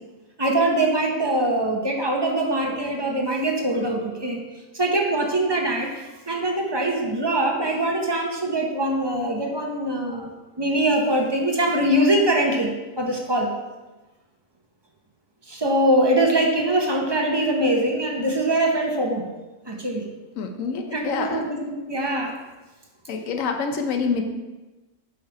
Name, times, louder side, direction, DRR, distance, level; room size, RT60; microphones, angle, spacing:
voice 1, 0.4-4.4 4.7-10.3 10.6-13.5 15.5-19.3 19.7-20.0 20.9-22.4, right 1 dB, 25° right, 0 dB, 0.7 m, -23 dB
voice 2, 20.4-21.5 23.1-24.2, left 5 dB, 85° left, 5 dB, 1.1 m, -26 dB
8.0 x 3.3 x 4.7 m, 1.2 s
omnidirectional pair, 1.3 m